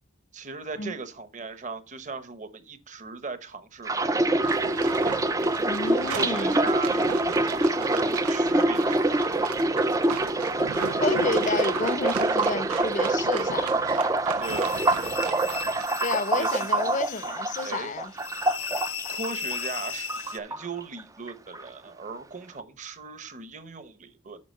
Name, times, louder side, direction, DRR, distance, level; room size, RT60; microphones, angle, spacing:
voice 1, 0.3-4.7 6.0-9.2 14.4-14.8 16.4-16.7 17.6-17.9 19.1-24.4, right 4 dB, 35° right, 1.0 m, -38 dB
sound 1, 3.9-19.8 20.1-21.0 21.3-21.6, right 2 dB, 15° right, 0.4 m, -25 dB
sound 2, 4.4-15.9, right 9 dB, 80° right, 0.4 m, -37 dB
voice 2, 5.6-6.6 10.9-13.7 16.0-18.1, left 3 dB, 35° left, 0.6 m, -30 dB
sound 3, 14.4-20.4, left 6 dB, 75° left, 1.0 m, -36 dB
8.5 x 5.0 x 6.5 m
head